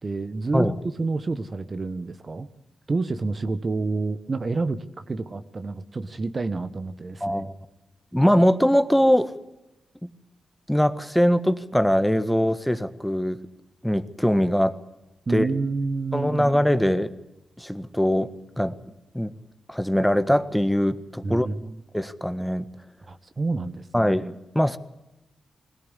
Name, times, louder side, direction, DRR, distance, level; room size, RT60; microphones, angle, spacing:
voice 1, 0.0-0.7 1.0-2.5 2.9-7.5 15.3-16.6 21.2-21.8 23.1-24.2, right 3 dB, 45° right, 11 dB, 1.3 m, -29 dB
voice 2, 7.2-7.5 8.1-9.3 10.0-10.1 10.7-13.4 13.8-14.8 15.3-15.5 16.1-17.1 17.6-18.3 18.6-18.7 19.1-19.3 19.7-21.5 21.9-22.6 23.9-24.8, equal, 5° left, 11 dB, 1.5 m, -22 dB
20.5 x 18.0 x 8.2 m, 0.92 s
supercardioid pair, 40°, 0 cm